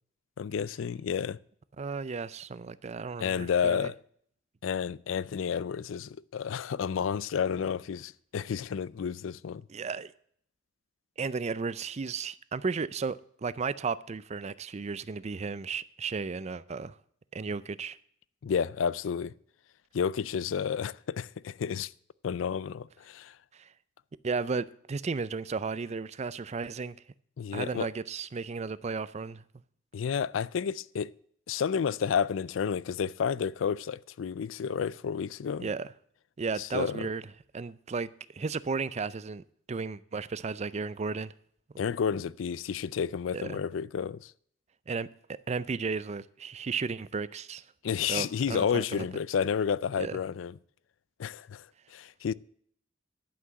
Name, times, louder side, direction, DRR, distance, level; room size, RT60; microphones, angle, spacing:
voice 1, 0.4-1.4 3.2-3.9 4.6-9.6 18.4-19.3 19.9-21.9 22.2-23.3 27.4-27.9 29.9-31.1 31.5-35.7 36.6-37.1 41.8-44.3 47.8-50.5 51.2-51.7 51.9-52.3, left 7 dB, 80° left, 0.4 m, -31 dB
voice 2, 1.8-3.9 9.7-10.1 11.2-17.0 17.3-18.0 23.5-23.7 24.2-27.0 27.5-29.4 35.6-35.9 36.4-37.2 37.5-41.3 43.3-43.6 44.9-47.6 48.1-49.0 50.0-50.2, right 4 dB, 35° right, 0.4 m, -34 dB
11.0 x 6.0 x 7.5 m
head